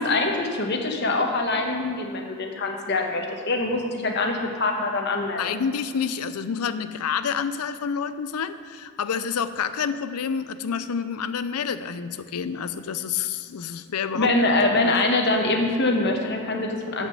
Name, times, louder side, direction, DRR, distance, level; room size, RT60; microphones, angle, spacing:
voice 1, 0.0-5.5 14.1-17.1, left 2 dB, 50° left, 2 dB, 1.1 m, -24 dB
voice 2, 5.4-14.3 14.8-14.9, left 7 dB, 90° left, 12 dB, 0.5 m, -28 dB
7.5 x 6.5 x 7.8 m, 2.1 s
head